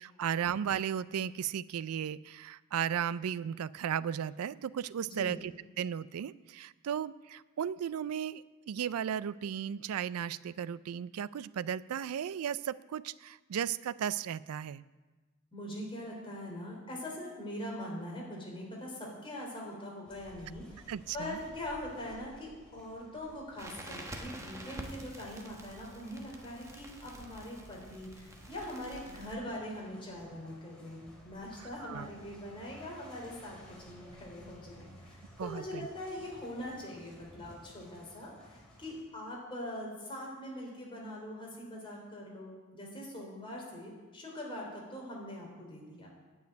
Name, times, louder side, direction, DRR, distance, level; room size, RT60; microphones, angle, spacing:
voice 1, 0.0-5.5 5.8-14.8 20.9-21.4 31.8-32.1 35.4-35.9, right 8 dB, 85° right, 18 dB, 0.4 m, -35 dB
voice 2, 5.0-5.4 15.5-46.1, left 1 dB, 25° left, -3 dB, 3.5 m, -42 dB
sound 1, 20.1-39.0, equal, 5° left, 2.8 m, -56 dB
Crackle, 23.6-29.4, right 1 dB, 15° right, 1.1 m, -47 dB
9.3 x 7.3 x 9.2 m, 1.2 s
head